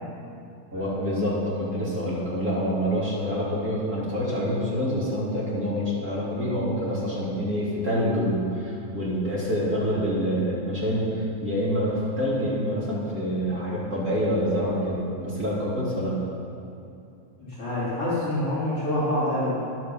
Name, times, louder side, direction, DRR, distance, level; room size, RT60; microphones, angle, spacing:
voice 1, 0.7-16.2, equal, 25° right, -8 dB, 2.6 m, -26 dB
voice 2, 17.4-19.5, left 1 dB, 35° left, -9 dB, 3.7 m, -26 dB
11.5 x 9.3 x 7.1 m, 2.6 s
omnidirectional pair, 5.0 m